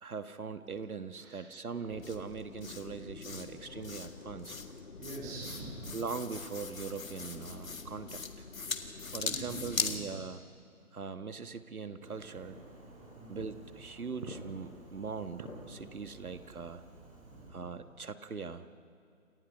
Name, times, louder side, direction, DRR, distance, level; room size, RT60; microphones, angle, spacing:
voice 1, 0.0-4.6 5.9-8.2 9.1-10.4 10.9-12.6 13.3-16.8 17.5-18.7, right 5 dB, 80° right, 10 dB, 1.5 m, -41 dB
voice 2, 1.2-1.5 4.9-5.9 9.2-10.1 13.1-13.4 17.2-17.6, right 1 dB, 10° right, -3 dB, 2.8 m, -45 dB
sound 1, 1.9-10.0, left 4 dB, 65° left, 2.1 m, -40 dB
Fireworks, 12.0-17.5, right 2 dB, 25° right, 4.8 m, -50 dB
28.5 x 28.0 x 5.6 m, 2.4 s
figure-of-eight pair, 165°, 43 cm